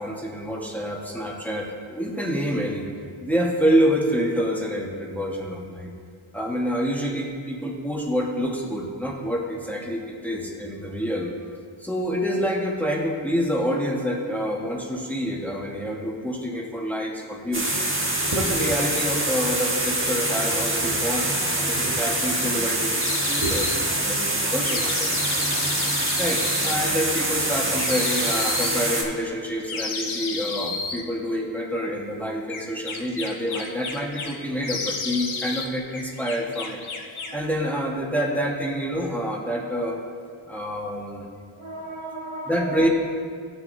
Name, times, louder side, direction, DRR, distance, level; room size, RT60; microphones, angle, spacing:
voice 1, 0.0-2.9 3.2-5.9 6.3-11.3 11.8-17.7 18.3-25.1 26.2-36.8 37.3-40.0 40.5-41.3 42.5-42.9, equal, 5° left, -3 dB, 1.4 m, -27 dB
Water running down the bath tub (hard), 17.5-29.0, right 1 dB, 25° right, 1.3 m, -25 dB
voice 2, 18.2-18.7 20.9-21.0 21.8-22.0 23.4-23.5 23.9-24.0 25.3-26.1 37.2-37.5 41.6-42.8, right 2 dB, 80° right, -1 dB, 1.4 m, -34 dB
sound 1, 23.0-23.8 24.6-26.8 27.8-28.8 29.7-31.0 32.5-34.3 34.6-35.7 35.9-37.4, left 4 dB, 75° left, 1.0 m, -31 dB
15.0 x 6.4 x 2.7 m, 2.1 s
wide cardioid pair, 75°, 48 cm